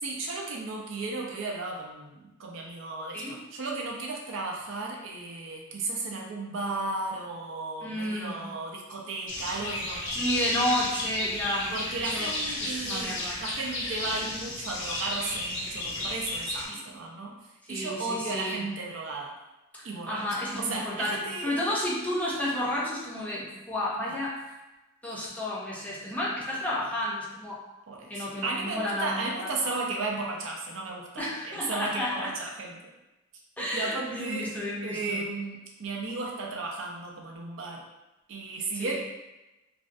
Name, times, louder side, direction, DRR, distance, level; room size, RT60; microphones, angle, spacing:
voice 1, 0.0-10.3 11.7-17.3 17.7-19.3 19.8-20.2 20.6-21.5 24.0-24.2 27.9-32.7 33.6-37.8 38.3-38.9, right 3 dB, 70° right, -1 dB, 0.5 m, -34 dB
voice 2, 7.8-8.4 10.1-12.3 12.6-13.4 16.7-16.8 17.7-18.7 20.1-24.4 25.0-27.6 28.1-29.2 29.6-29.7 31.2-32.3 33.6-35.2 38.7-38.9, left 1 dB, 5° left, -6 dB, 0.5 m, -31 dB
sound 1, 9.3-16.7, left 1 dB, 65° left, 0.6 m, -33 dB
2.5 x 2.1 x 2.5 m, 1.0 s
head